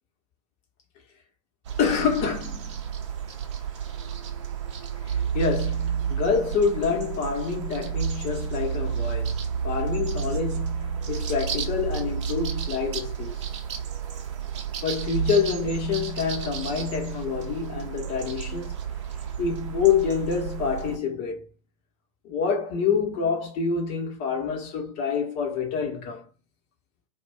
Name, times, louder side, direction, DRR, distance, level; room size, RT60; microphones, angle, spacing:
sound 1, 1.6-21.0, right 7 dB, 55° right, 0.6 m, -31 dB
voice 1, 1.8-2.8 5.0-13.4 14.8-18.7 19.4-21.4 22.2-26.2, left 6 dB, 35° left, 1.1 m, -27 dB
2.5 x 2.4 x 3.3 m
figure-of-eight pair, 100°, 18 cm